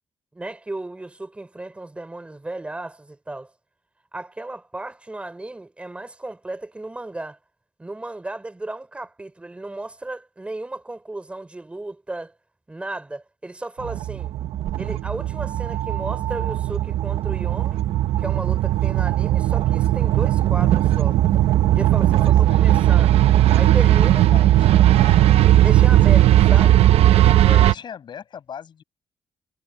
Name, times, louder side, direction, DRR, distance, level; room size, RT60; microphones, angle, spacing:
voice 1, 0.3-3.5 4.1-7.4 7.8-12.3 12.7-14.3 14.8-17.8 18.2-21.2 21.7-23.2 23.5-24.3 25.6-26.7 27.4-27.7, right 2 dB, 10° right, 3.6 m, -34 dB
sound 1, 13.8-27.7, right 13 dB, 75° right, 0.8 m, -17 dB
voice 2, 22.1-22.7 24.3-25.3 26.5-26.7 27.5-28.8, left 8 dB, 45° left, 6.7 m, -39 dB
cardioid pair, 150°, 10 cm